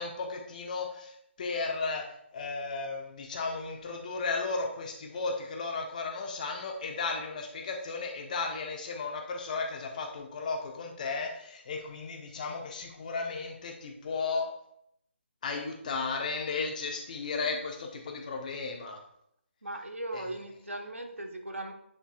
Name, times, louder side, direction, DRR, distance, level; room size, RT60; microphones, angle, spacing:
voice 1, 0.0-2.0 2.3-14.5 15.4-19.0 20.1-20.2, left 4 dB, 35° left, 2 dB, 1.3 m, -34 dB
voice 2, 19.6-21.7, right 1 dB, 80° right, 3 dB, 1.4 m, -38 dB
10.0 x 5.3 x 2.5 m, 0.73 s
figure-of-eight pair, 145°, 7 cm